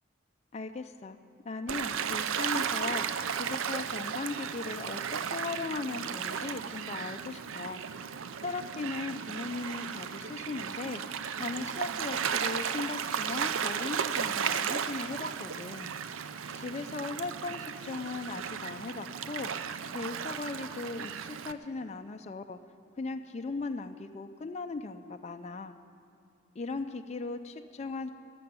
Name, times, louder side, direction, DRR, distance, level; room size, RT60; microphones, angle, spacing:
voice 1, 0.5-1.2 1.4-3.1 3.3-7.8 8.4-11.0 11.4-15.9 16.5-19.5 19.9-22.6 23.0-25.8 26.6-28.1, left 3 dB, 35° left, 6 dB, 0.4 m, -38 dB
Gull seagull / Waves surf, 1.7-21.5, right 7 dB, 90° right, 0.5 m, -35 dB
13.0 x 6.9 x 10.0 m, 2.6 s
head